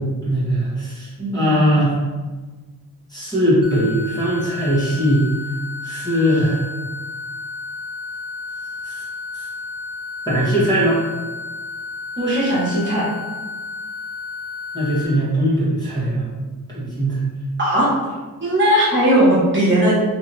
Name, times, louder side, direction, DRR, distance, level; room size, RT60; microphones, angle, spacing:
voice 1, 0.0-1.9 3.1-5.3 5.8-6.7 8.8-9.0 10.2-11.0 14.7-16.5 16.7-17.2, equal, 10° left, -9 dB, 1.1 m, -20 dB
voice 2, 1.2-1.6 12.2-13.1 17.6-17.9 18.4-20.0, right 1 dB, 30° right, -7 dB, 1.4 m, -17 dB
sound 1, 3.6-15.1, left 3 dB, 60° right, 0.8 m, -32 dB
3.0 x 2.7 x 4.0 m, 1.3 s
wide cardioid pair, 120°, 37 cm